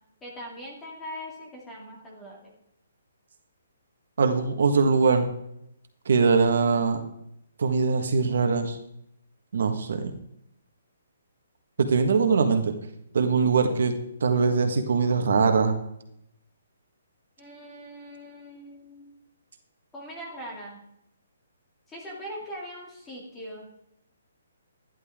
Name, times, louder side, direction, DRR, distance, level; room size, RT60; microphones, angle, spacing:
voice 1, 0.2-2.5 17.4-19.1 19.9-20.8 21.9-23.7, equal, 10° left, -2 dB, 2.5 m, -41 dB
voice 2, 4.2-5.3 6.0-7.0 7.6-8.8 9.5-10.1 11.8-12.7 13.1-13.9 14.2-15.7, right 5 dB, 65° right, 6 dB, 1.6 m, -22 dB
13.5 x 11.0 x 3.7 m, 0.78 s
hypercardioid pair, 170°, 0 cm